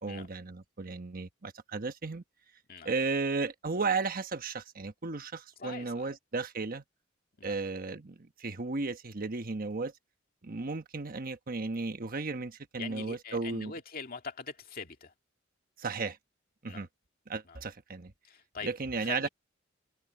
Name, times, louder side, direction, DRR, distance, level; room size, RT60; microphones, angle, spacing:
voice 1, 0.0-2.2 2.8-6.8 7.4-9.9 10.4-13.7 15.8-16.2 16.6-16.9 17.3-18.1 18.6-19.3, right 4 dB, 45° right, 1.1 m, -34 dB
voice 2, 5.6-6.1 7.4-7.6 12.8-15.1 16.7-16.9 17.5-17.6 18.2-18.7 19.0-19.3, left 5 dB, 50° left, 2.2 m, -43 dB
head